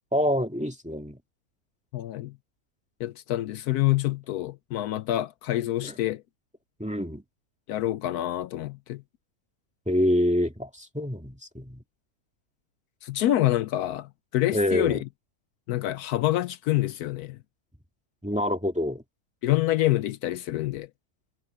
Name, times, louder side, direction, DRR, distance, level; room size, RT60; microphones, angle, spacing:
voice 1, 0.1-1.2 5.8-6.0 6.8-7.2 9.9-11.8 14.5-15.0 18.2-19.0, left 1 dB, 5° right, 2.0 m, -26 dB
voice 2, 1.9-2.4 3.0-6.2 7.7-9.0 13.0-15.0 15.7-17.4 19.4-20.9, left 14 dB, 75° left, 1.1 m, -27 dB
omnidirectional pair, 1.6 m